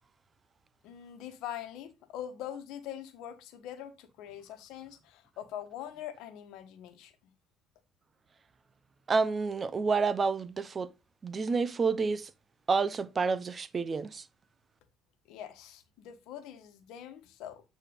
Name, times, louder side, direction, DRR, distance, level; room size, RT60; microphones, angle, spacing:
voice 1, 0.8-7.1 15.3-17.6, left 10 dB, 75° left, 1.2 m, -43 dB
voice 2, 9.1-10.9 11.2-12.3 12.7-14.2, right 4 dB, 35° right, 0.8 m, -29 dB
8.8 x 4.2 x 3.7 m
supercardioid pair, 75°, 0 cm